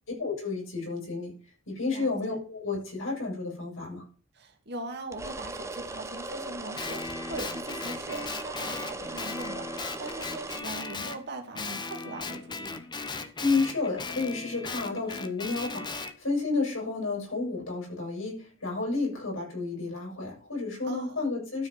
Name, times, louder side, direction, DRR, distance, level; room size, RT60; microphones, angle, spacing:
voice 1, 0.2-1.3 1.7-4.0 13.4-21.7, left 3 dB, 85° left, -2 dB, 6.8 m, -31 dB
voice 2, 1.9-2.4 4.3-12.8 20.8-21.3, right 2 dB, 55° right, 3 dB, 2.2 m, -41 dB
sound 1, 5.1-10.6, right 2 dB, 15° right, 0.8 m, -38 dB
Guitar, 6.8-11.2 11.6-16.1, left 3 dB, 20° left, 0.8 m, -37 dB
12.5 x 4.6 x 6.1 m, 0.39 s
head